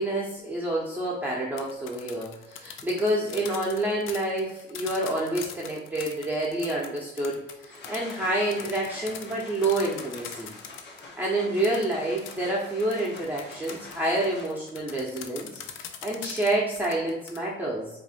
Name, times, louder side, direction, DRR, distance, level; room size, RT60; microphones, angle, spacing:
voice 1, 0.0-10.5 11.2-15.5 15.8-17.9, right 1 dB, 10° right, -5 dB, 0.9 m, -28 dB
sound 1, 1.4-11.1 11.6-17.4, left 8 dB, 80° left, 0.5 m, -42 dB
sound 2, 7.5-14.8, left 2 dB, 60° left, 0.9 m, -46 dB
4.8 x 2.7 x 2.5 m, 0.87 s
cardioid pair, 90°, 20 cm